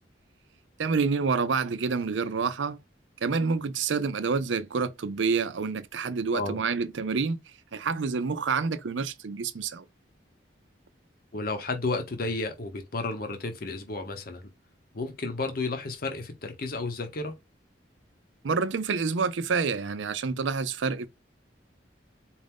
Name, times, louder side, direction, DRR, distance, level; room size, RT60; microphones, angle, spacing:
voice 1, 0.8-2.8 3.2-7.4 7.7-9.8 18.4-21.1, right 5 dB, 85° right, 0.5 m, -28 dB
voice 2, 11.3-14.5 14.9-17.3, left 3 dB, 50° left, 0.8 m, -32 dB
4.4 x 2.5 x 3.5 m
head